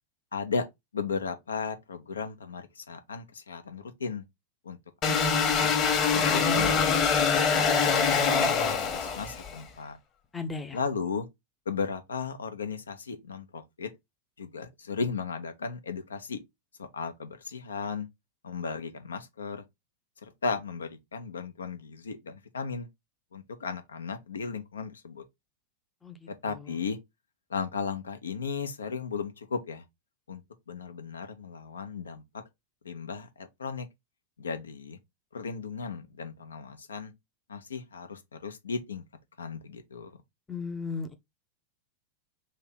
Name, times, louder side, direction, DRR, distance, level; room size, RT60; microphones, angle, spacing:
voice 1, 0.3-0.6 0.9-4.2 4.6-5.7 6.1-10.0 10.7-11.3 11.7-13.9 14.4-16.4 16.8-18.1 18.4-19.6 20.2-22.9 23.3-25.2 26.3-27.0 27.5-29.8 30.3-30.4 30.7-32.2 32.8-33.9 34.4-35.0 35.3-37.1 37.5-39.0 39.4-40.1, left 5 dB, 70° left, 0.7 m, -35 dB
sound 1, 5.0-9.6, left 5 dB, 30° left, 1.1 m, -24 dB
voice 2, 10.3-10.8 26.0-26.2 40.5-41.1, left 4 dB, 15° left, 0.6 m, -35 dB
3.2 x 2.8 x 3.9 m
figure-of-eight pair, 90°, 0 cm